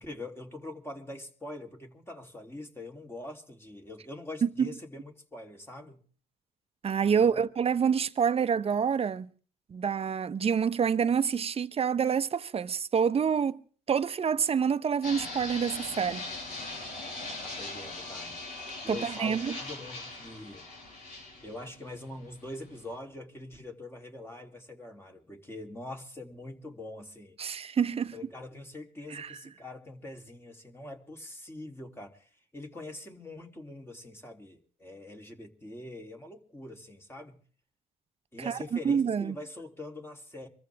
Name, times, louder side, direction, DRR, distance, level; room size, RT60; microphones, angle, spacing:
voice 1, 0.0-6.0 7.1-7.4 17.1-20.7 21.4-27.4 28.1-37.4 38.3-40.5, left 2 dB, 15° left, 3.4 m, -44 dB
voice 2, 6.8-9.3 9.7-13.6 13.9-16.2 18.9-19.6 27.4-28.1 29.1-29.3 38.5-38.6 38.8-39.4, right 7 dB, 40° right, 1.0 m, -27 dB
Fixed-wing aircraft airplane, 15.0-23.0, left 2 dB, 70° left, 7.1 m, -40 dB
25.0 x 14.5 x 3.6 m
supercardioid pair, 75°, 15 cm